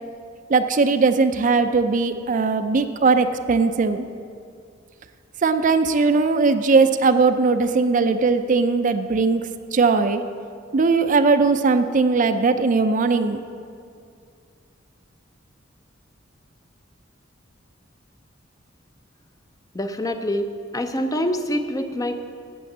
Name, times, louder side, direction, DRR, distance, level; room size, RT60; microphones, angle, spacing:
voice 1, 0.5-4.0 5.4-9.4 9.7-10.2 10.7-13.4, right 4 dB, 40° right, 9 dB, 0.5 m, -19 dB
voice 2, 19.7-22.2, equal, 20° left, 7 dB, 0.5 m, -25 dB
8.6 x 8.1 x 7.8 m, 2.3 s
head